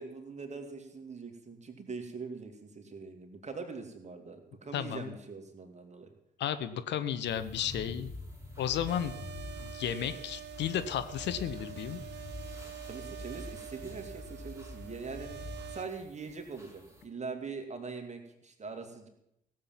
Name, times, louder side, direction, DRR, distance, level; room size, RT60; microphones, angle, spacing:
voice 1, 0.0-6.1 12.8-19.1, right 4 dB, 35° right, 5 dB, 2.8 m, -42 dB
voice 2, 4.7-5.1 6.4-8.1 8.6-9.1 9.6-12.0, left 9 dB, 60° left, 11 dB, 0.9 m, -33 dB
sound 1, 7.2-17.0, left 2 dB, 15° right, 3.7 m, -46 dB
sound 2, 8.9-15.9, right 12 dB, 55° right, 0.9 m, -46 dB
17.0 x 7.6 x 7.5 m, 0.80 s
figure-of-eight pair, 45°, 21 cm